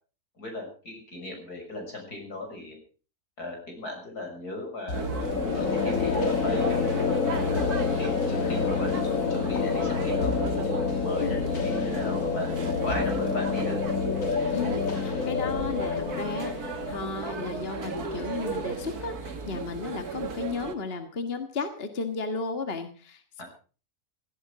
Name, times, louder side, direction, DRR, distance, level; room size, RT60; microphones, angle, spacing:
voice 1, 0.4-2.8 3.4-5.0 5.6-7.1 7.5-12.5 12.8-13.8 23.4-23.5, left 2 dB, 80° left, 2 dB, 7.1 m, -37 dB
sound 1, 4.9-18.6, left 5 dB, 60° left, 1.8 m, -28 dB
sound 2, 4.9-20.7, right 4 dB, 80° right, 2.5 m, -35 dB
voice 2, 14.5-23.4, left 4 dB, 40° left, 7 dB, 1.8 m, -34 dB
17.0 x 16.0 x 4.9 m, 0.38 s
omnidirectional pair, 1.6 m